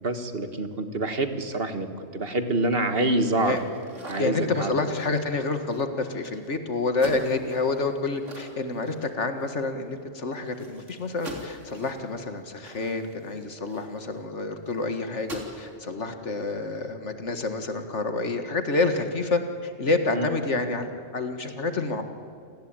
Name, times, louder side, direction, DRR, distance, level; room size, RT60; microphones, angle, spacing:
voice 1, 0.0-3.6 4.1-4.7 20.1-20.3, right 2 dB, 50° right, 8 dB, 1.8 m, -26 dB
sound 1, 3.3-6.5 6.9-9.6 9.9-10.0 10.3-14.2 14.7-14.8 15.1-15.7, right 1 dB, 80° right, 3.9 m, -44 dB
voice 2, 4.2-22.0, left 3 dB, 70° left, 7 dB, 2.1 m, -28 dB
28.0 x 18.5 x 9.0 m, 2.4 s
omnidirectional pair, 1.3 m